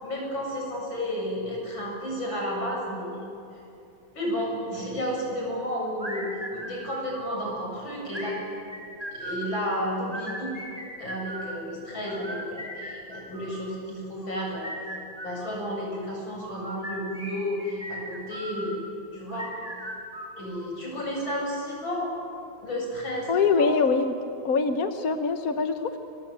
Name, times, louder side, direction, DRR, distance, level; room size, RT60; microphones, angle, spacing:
voice 1, 0.0-3.1 4.2-8.4 9.1-10.5 11.0-14.7 15.2-18.8 19.1-19.5 20.4-22.1 22.6-23.7, equal, 75° left, -2 dB, 8.6 m, -32 dB
sound 1, 6.0-7.5 8.1-9.5 10.0-11.6 12.1-13.7 14.2-15.7 16.4-18.7 19.3-20.8, equal, 20° right, 5.8 m, -38 dB
voice 2, 23.3-24.1 24.4-26.0, left 5 dB, 50° left, 8 dB, 1.4 m, -24 dB
29.0 x 24.5 x 8.2 m, 2.7 s
omnidirectional pair, 2.1 m